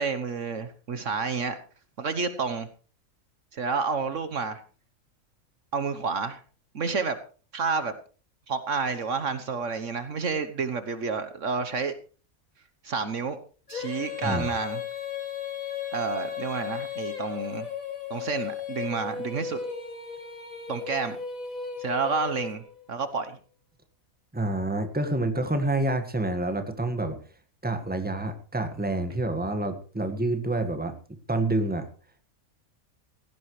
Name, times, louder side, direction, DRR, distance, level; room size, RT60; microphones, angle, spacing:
voice 1, 0.0-1.6 2.0-2.7 3.5-4.6 5.7-6.4 6.7-7.2 7.5-7.9 8.5-11.9 12.8-13.4 13.7-14.8 15.9-17.7 18.1-19.6 20.7-21.2 21.8-22.6 22.9-23.4, right 5 dB, 60° right, 11 dB, 1.4 m, -29 dB
Female singing, 13.7-22.8, left 7 dB, 70° left, 3.0 m, -35 dB
voice 2, 24.3-27.2 27.6-30.9 31.3-31.9, right 2 dB, 5° right, 7 dB, 1.6 m, -28 dB
17.5 x 15.5 x 3.2 m, 0.39 s
omnidirectional pair, 1.5 m